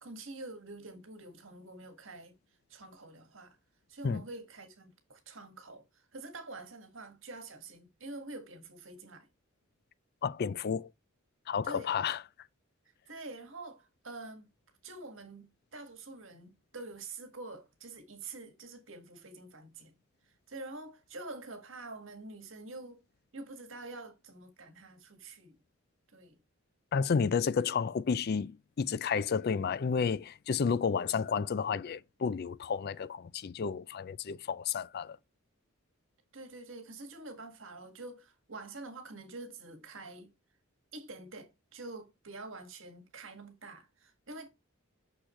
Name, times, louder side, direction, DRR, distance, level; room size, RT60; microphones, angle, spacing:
voice 1, 0.0-2.3 2.7-3.6 3.9-9.3 11.6-11.9 13.1-14.5 14.8-19.9 20.2-23.0 23.3-25.6 26.1-26.4 36.3-40.3 40.9-44.5, right 2 dB, 65° right, 1.7 m, -46 dB
voice 2, 10.2-10.9 11.5-12.2 26.9-35.2, left 6 dB, 50° left, 0.4 m, -31 dB
6.4 x 6.3 x 3.1 m
head